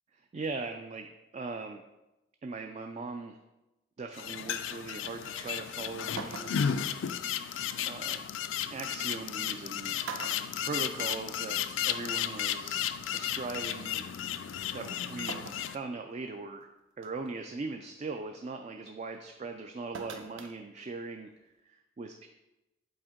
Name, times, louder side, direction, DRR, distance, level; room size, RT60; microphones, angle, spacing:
voice 1, 0.2-1.8 2.4-3.4 4.0-7.3 7.8-8.2 8.7-10.0 10.3-14.1 14.7-16.7 17.0-22.3, right 3 dB, 35° right, 5 dB, 0.3 m, -40 dB
sound 1, 4.1-15.8, left 9 dB, 75° left, 0.4 m, -34 dB
sound 2, 6.2-6.8 8.4-8.5 9.5-9.7 10.0-11.4 11.8-11.9 13.1-13.2 15.3-15.8 16.3-16.4 17.0-17.3 19.9-20.6 20.9-21.0, right 4 dB, 80° right, 0.6 m, -42 dB
7.8 x 4.3 x 3.7 m, 0.98 s
head